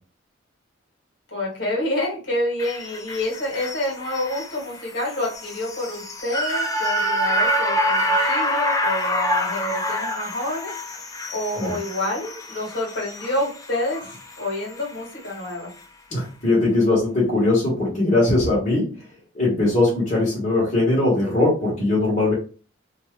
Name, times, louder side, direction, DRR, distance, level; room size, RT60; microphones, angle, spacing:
voice 1, 1.3-10.7 11.1-15.7, left 1 dB, 55° left, -3 dB, 1.2 m, -28 dB
sound 1, 2.6-14.9 15.3-15.4, equal, 15° left, 0.3 m, -26 dB
voice 2, 16.1-18.9 19.3-22.3, left 2 dB, 35° left, -6 dB, 1.0 m, -20 dB
2.6 x 2.3 x 3.1 m, 0.37 s
head